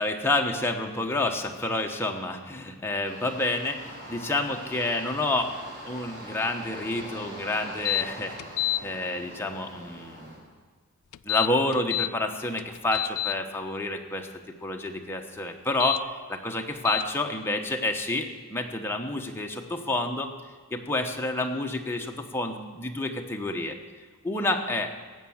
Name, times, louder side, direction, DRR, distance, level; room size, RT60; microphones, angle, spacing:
voice 1, 0.0-5.5 5.9-10.4 11.2-14.3 14.6-20.3 20.7-23.7 24.2-24.9, left 2 dB, 10° left, 2 dB, 1.1 m, -29 dB
sound 1, 3.0-10.4, right 1 dB, 45° right, 4.5 m, -43 dB
sound 2, 7.9-8.0 8.4-8.8 11.1-12.1 12.6-13.3 15.7-16.0 16.9-17.0, left 15 dB, 85° left, 0.4 m, -27 dB
17.5 x 7.6 x 7.3 m, 1.5 s
head